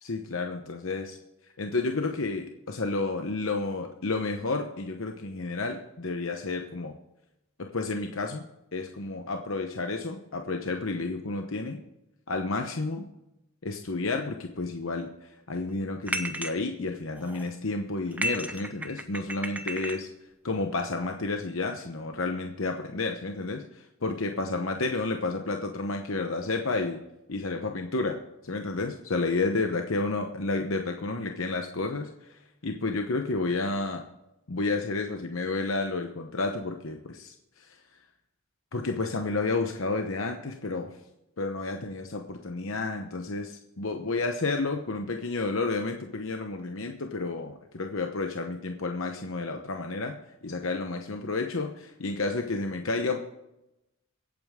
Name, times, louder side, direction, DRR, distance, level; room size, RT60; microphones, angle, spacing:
voice 1, 0.0-1.2 1.6-7.0 7.7-8.5 8.7-11.8 12.3-13.1 13.6-20.1 20.4-27.0 27.3-34.0 34.5-37.8 38.7-40.9 41.4-53.2, left 3 dB, 60° left, 4 dB, 0.9 m, -31 dB
sound 1, 16.1-16.6 17.1-17.5 18.1-20.0, right 1 dB, 5° right, 0.8 m, -33 dB
24.0 x 8.9 x 3.7 m, 0.91 s
head